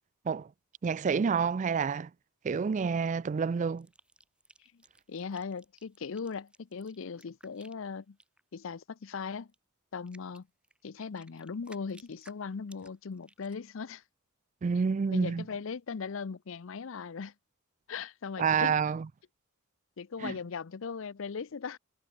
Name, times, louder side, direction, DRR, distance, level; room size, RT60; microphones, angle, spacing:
voice 1, 0.8-2.1 2.4-3.9 14.6-15.4 18.4-19.1 20.2-20.3, right 6 dB, 35° right, 0.3 m, -28 dB
sound 1, 3.8-8.4 9.5-9.6 10.1-13.7, right 1 dB, 5° right, 7.0 m, -59 dB
voice 2, 5.1-8.2 8.5-9.5 9.9-10.5 10.8-14.0 15.1-17.3 17.9-18.8 20.0-21.8, left 5 dB, 65° left, 0.5 m, -39 dB
head